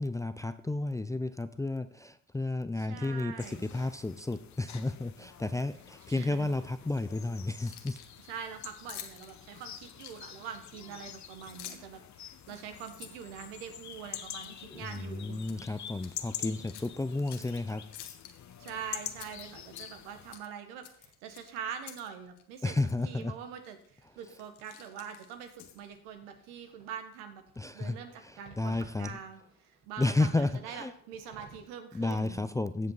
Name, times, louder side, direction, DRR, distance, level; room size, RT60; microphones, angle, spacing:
voice 1, 0.0-8.0 14.7-17.8 22.6-23.3 27.6-29.2 30.0-30.9 31.9-32.9, left 2 dB, 10° left, 12 dB, 0.4 m, -32 dB
voice 2, 2.8-3.7 6.1-6.5 8.3-15.6 18.6-22.7 23.0-27.4 27.7-32.4, right 8 dB, 85° right, 6 dB, 1.5 m, -44 dB
sound 1, 3.4-20.4, left 9 dB, 45° left, 1.0 m, -46 dB
Keys jangling, 7.6-8.2 8.9-10.5 11.3-12.0 12.4-14.0 14.4-14.6 14.9-15.6 15.9-16.1 16.7-17.6 17.9-18.7 19.1-20.1 20.3-20.5 20.8-22.1 22.4-22.5 22.9-23.0 23.6-23.9 24.2-25.9, left 11 dB, 80° left, 1.3 m, -49 dB
sound 2, 19.7-31.7, right 3 dB, 55° right, 4.5 m, -61 dB
15.5 x 5.3 x 4.0 m, 0.63 s
supercardioid pair, 80°, 40 cm